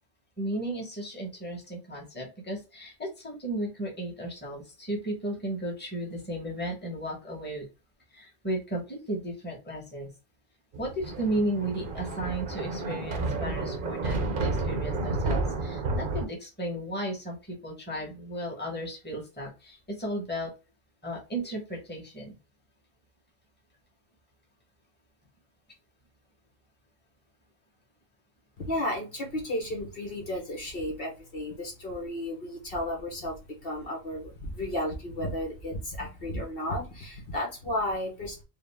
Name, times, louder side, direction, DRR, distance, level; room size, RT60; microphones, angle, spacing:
voice 1, 0.4-7.6 8.1-10.1 10.8-20.5 21.0-22.3, right 1 dB, 10° left, -1 dB, 1.2 m, -34 dB
Thunder, 10.7-16.2, right 3 dB, 55° right, 0.8 m, -31 dB
voice 2, 28.6-38.4, left 1 dB, 55° left, -1 dB, 1.2 m, -33 dB
4.7 x 2.1 x 3.4 m, 0.29 s
omnidirectional pair, 1.1 m